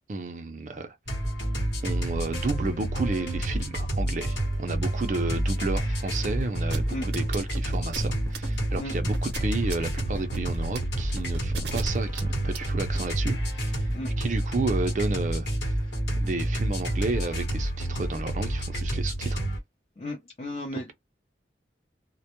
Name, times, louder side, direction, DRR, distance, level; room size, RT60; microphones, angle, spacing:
voice 1, 0.1-1.0 1.8-15.7 16.2-19.4, right 3 dB, 45° right, 0.4 m, -32 dB
sound 1, 1.1-19.6, right 1 dB, 85° left, 1.0 m, -29 dB
sound 2, 6.7-13.1, right 2 dB, 80° right, 0.7 m, -36 dB
voice 2, 20.0-20.9, left 1 dB, 35° left, 0.5 m, -34 dB
2.1 x 2.1 x 2.8 m
head